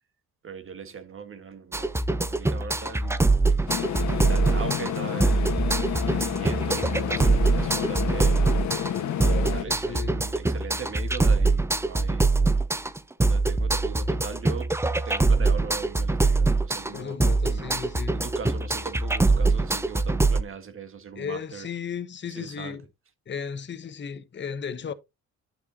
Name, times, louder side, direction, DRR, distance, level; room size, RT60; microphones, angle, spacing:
voice 1, 0.4-3.2 3.5-3.8 4.3-8.4 9.2-12.3 13.2-14.7 15.0-17.2 17.5-17.8 18.1-21.7 22.2-22.8, right 6 dB, 45° right, 1.6 m, -40 dB
sound 1, 1.7-20.4, right 3 dB, 10° right, 0.6 m, -23 dB
sound 2, 3.7-9.6, left 9 dB, 65° left, 1.4 m, -30 dB
voice 2, 9.2-10.2 16.9-18.1 21.2-22.9 23.3-24.9, left 7 dB, 40° left, 0.9 m, -35 dB
10.5 x 6.0 x 2.8 m
cardioid pair, 90°, 30 cm